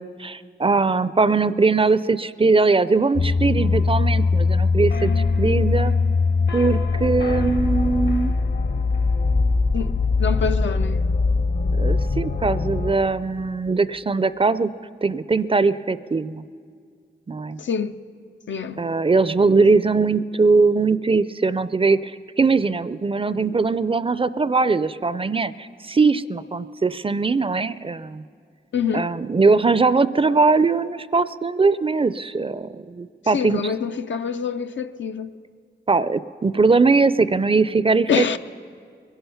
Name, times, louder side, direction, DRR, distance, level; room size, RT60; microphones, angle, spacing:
voice 1, 0.0-5.1 5.4-5.9 6.5-8.4 11.8-14.7 15.0-16.4 17.3-17.6 18.8-28.2 28.9-33.6 35.9-38.4, right 4 dB, 30° right, 0.4 m, -20 dB
sound 1, 3.2-13.0, left 4 dB, 60° left, 1.0 m, -21 dB
voice 2, 9.7-11.0 17.6-18.0 18.5-18.8 28.7-29.1 33.2-35.3 38.1-38.4, left 6 dB, 80° left, 0.5 m, -26 dB
22.0 x 11.5 x 5.8 m
cardioid pair, 55°, 19 cm